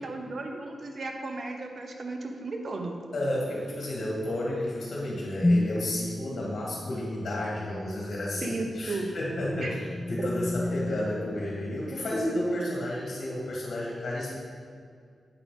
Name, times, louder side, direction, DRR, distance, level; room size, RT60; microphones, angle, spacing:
voice 1, 0.0-3.0 8.4-9.1 9.6-9.7 10.2-10.3, right 3 dB, 55° right, 3 dB, 0.8 m, -35 dB
voice 2, 3.1-14.4, left 1 dB, 65° left, -4 dB, 1.7 m, -31 dB
sound 1, 5.4-6.0 8.9-12.3, left 1 dB, 25° left, 0.3 m, -30 dB
8.1 x 5.0 x 3.6 m, 2.2 s
cardioid pair, 70°, 0 cm